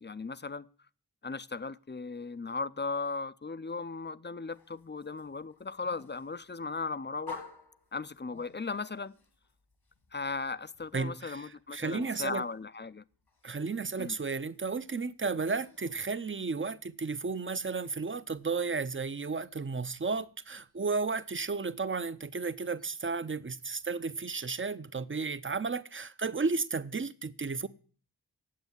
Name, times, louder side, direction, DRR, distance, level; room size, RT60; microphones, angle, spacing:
voice 1, 0.0-0.7 1.2-7.4 7.9-9.2 10.1-13.0 14.0-14.2, left 4 dB, 30° left, 0.5 m, -37 dB
sound 1, 4.5-17.0 17.3-23.9, left 4 dB, 75° left, 1.9 m, -56 dB
voice 2, 10.9-12.4 13.4-27.7, right 4 dB, 30° right, 0.6 m, -33 dB
9.5 x 7.9 x 8.0 m
wide cardioid pair, 40°, 39 cm